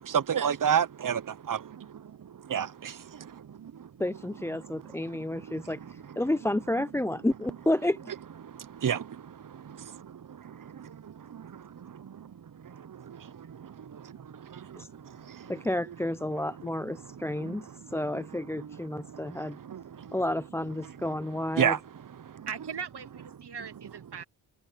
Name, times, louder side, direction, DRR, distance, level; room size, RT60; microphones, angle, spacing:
voice 1, 0.0-3.9 4.5-6.2 8.4-15.6 16.3-16.7 17.0-20.2 20.8-21.2 21.5-22.5, right 8 dB, 45° right, 0.9 m, -34 dB
voice 2, 4.0-8.0 14.8-14.9 15.5-19.6 20.1-21.8, left 1 dB, 5° left, 0.5 m, -31 dB
voice 3, 22.5-24.2, right 7 dB, 60° right, 2.1 m, -39 dB
supercardioid pair, 40°, 47 cm